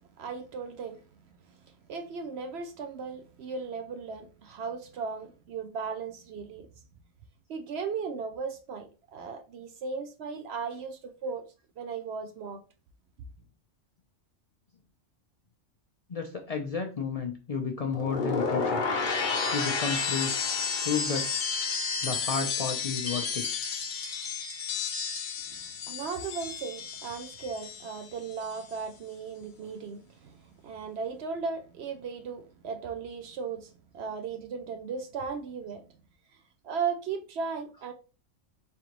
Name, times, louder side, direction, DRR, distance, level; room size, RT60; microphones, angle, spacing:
voice 1, 0.2-1.0 1.5-1.6 1.9-6.7 7.5-11.4 11.8-12.6 25.5-25.6 25.9-35.8 36.6-37.9, right 5 dB, 65° right, 0.7 m, -36 dB
voice 2, 16.1-18.8 19.5-20.3 20.8-21.3 22.0-23.5, left 5 dB, 75° left, 0.3 m, -32 dB
sound 1, 17.9-28.0 28.3-28.8, left 5 dB, 50° left, 0.7 m, -31 dB
3.7 x 3.3 x 2.9 m
omnidirectional pair, 1.4 m